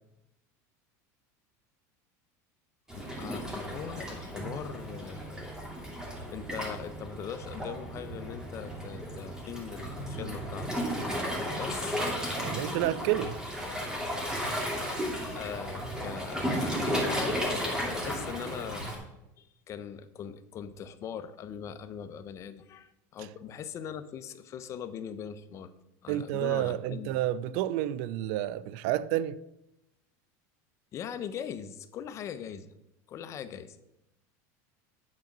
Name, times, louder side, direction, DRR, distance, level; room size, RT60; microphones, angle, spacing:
voice 1, 2.9-5.5 6.3-10.7 11.6-12.0 14.7-14.8 15.3-18.9 19.4-25.7 26.0-27.2 30.9-32.7 33.1-33.8, left 8 dB, 35° left, 0.7 m, -41 dB
Waves surf, 2.9-19.0, equal, 10° right, 2.3 m, -34 dB
voice 2, 12.4-13.4 26.1-29.4, right 13 dB, 65° right, 0.4 m, -30 dB
9.6 x 5.1 x 6.0 m
supercardioid pair, 135°, 8 cm